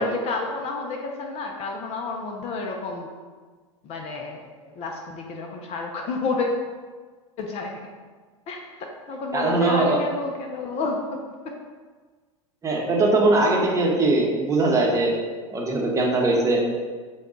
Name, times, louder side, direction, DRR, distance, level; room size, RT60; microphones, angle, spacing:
voice 1, 0.0-3.1 3.8-6.6 7.4-7.8 8.5-11.5, left 3 dB, 40° left, 2 dB, 0.6 m, -30 dB
voice 2, 9.3-10.0 12.6-15.1 15.5-16.6, right 2 dB, 20° right, -2 dB, 0.9 m, -21 dB
5.3 x 2.3 x 3.7 m, 1.4 s
hypercardioid pair, 105°, 17 cm